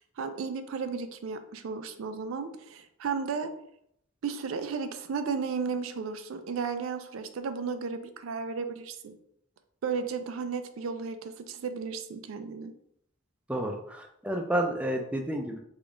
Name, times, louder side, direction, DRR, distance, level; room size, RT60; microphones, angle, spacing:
voice 1, 0.0-3.5 4.2-9.2 9.8-12.7, right 5 dB, 85° right, 9 dB, 0.4 m, -34 dB
voice 2, 13.5-15.6, right 1 dB, 5° right, 2 dB, 0.3 m, -30 dB
3.5 x 2.3 x 3.7 m, 0.74 s
head